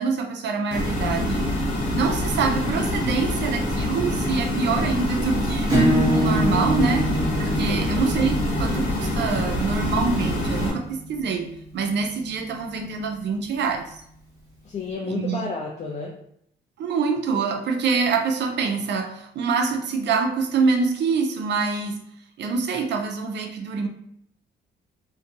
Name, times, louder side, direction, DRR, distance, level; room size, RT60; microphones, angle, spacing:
voice 1, 0.0-1.4 1.9-5.8 6.1-7.1 7.4-14.0 15.1-15.4 16.8-22.0 22.4-23.9, right 5 dB, 60° right, 4 dB, 0.5 m, -25 dB
sound 1, 0.7-10.7, left 1 dB, 60° left, 1.1 m, -25 dB
Acoustic guitar / Strum, 5.7-10.9, right 1 dB, 15° right, 1.1 m, -25 dB
voice 2, 7.7-8.0 14.6-16.1, left 4 dB, 35° left, -1 dB, 0.5 m, -31 dB
2.5 x 2.2 x 2.6 m, 0.71 s
cardioid pair, 90°, 20 cm